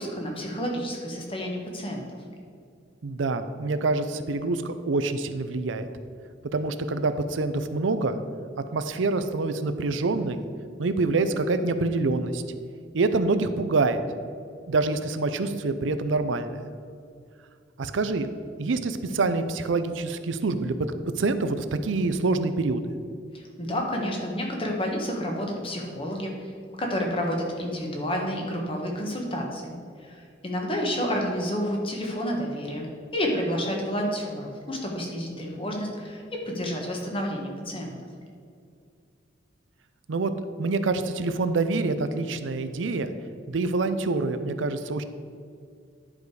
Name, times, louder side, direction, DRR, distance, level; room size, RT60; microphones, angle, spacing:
voice 1, 0.0-2.0 23.3-26.5 26.8-32.9 33.1-37.9, equal, 30° left, 0 dB, 1.4 m, -30 dB
voice 2, 3.0-5.9 6.5-8.2 8.7-10.4 10.8-12.4 12.9-14.0 14.7-16.6 17.8-18.3 18.6-22.8 40.1-40.3 40.6-43.1 43.5-45.0, right 3 dB, 85° right, 10 dB, 0.5 m, -26 dB
10.5 x 4.9 x 4.8 m, 2.3 s
head